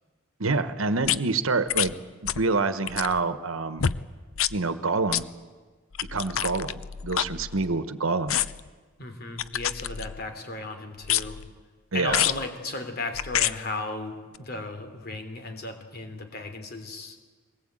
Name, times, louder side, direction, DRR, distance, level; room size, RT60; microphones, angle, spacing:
voice 1, 0.4-2.0 2.3-3.8 4.5-5.3 6.1-8.4 11.9-12.3, right 3 dB, 75° right, 12 dB, 1.2 m, -27 dB
sound 1, 1.0-1.2 1.7-1.9 2.3-2.5 2.8-3.2 3.8-4.0 4.4-4.6 5.1-5.2 5.9-7.9 8.3-8.7 9.4-10.3 11.0-11.5 12.1-12.4 13.1-13.5 14.3-14.4, left 10 dB, 75° left, 0.7 m, -28 dB
voice 2, 9.0-11.4 11.9-17.2, left 2 dB, 50° left, 6 dB, 3.1 m, -35 dB
22.5 x 19.5 x 9.0 m, 1.4 s
head